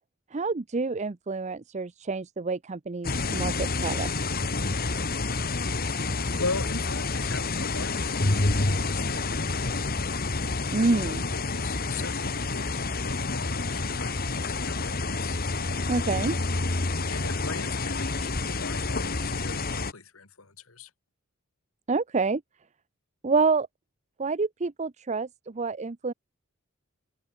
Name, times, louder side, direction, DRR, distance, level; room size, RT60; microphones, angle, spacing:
voice 1, 0.3-4.1 10.7-11.2 15.9-16.3 21.9-22.4 23.2-23.7 24.2-26.1, right 4 dB, 35° right, 0.6 m, -27 dB
sound 1, 3.0-19.9, left 3 dB, 45° left, 1.7 m, -28 dB
voice 2, 5.6-9.9 11.0-15.4 17.0-20.9, left 4 dB, 80° left, 3.2 m, -39 dB
head